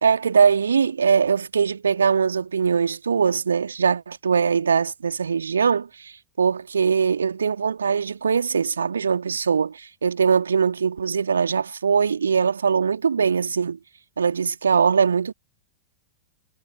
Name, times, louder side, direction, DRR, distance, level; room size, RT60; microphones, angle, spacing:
voice 1, 0.0-13.8 14.2-15.3, right 6 dB, 70° right, 2.8 m, -21 dB
figure-of-eight pair, 90°, 0 cm